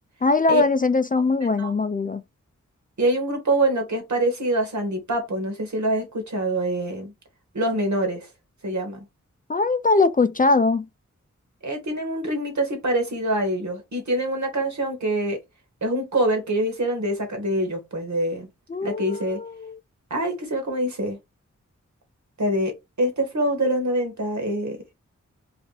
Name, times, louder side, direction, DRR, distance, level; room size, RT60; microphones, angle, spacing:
voice 1, 0.2-2.2 9.5-10.9 18.7-19.8, left 3 dB, 30° left, 0.4 m, -21 dB
voice 2, 3.0-7.1 7.5-8.3 8.6-9.1 11.6-15.4 15.8-18.5 18.8-19.4 20.1-21.2 22.4-24.8, right 1 dB, 70° right, 1.8 m, -25 dB
3.3 x 2.6 x 4.1 m
cardioid pair, 40°, 30 cm